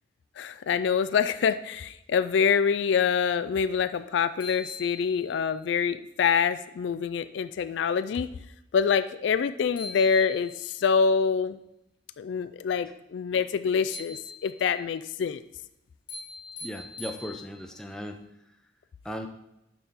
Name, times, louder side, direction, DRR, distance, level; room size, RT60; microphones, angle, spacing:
voice 1, 0.4-8.3 8.7-11.6 12.2-15.4, left 6 dB, 65° left, 12 dB, 0.3 m, -26 dB
sound 1, 3.9-4.0 4.4-5.5 9.4-9.5 9.8-10.8 13.9-14.8 16.1-17.8, left 3 dB, 25° left, 1.7 m, -42 dB
voice 2, 16.6-18.2 19.0-19.3, equal, 5° left, 4 dB, 0.5 m, -37 dB
6.8 x 5.7 x 3.6 m, 0.83 s
head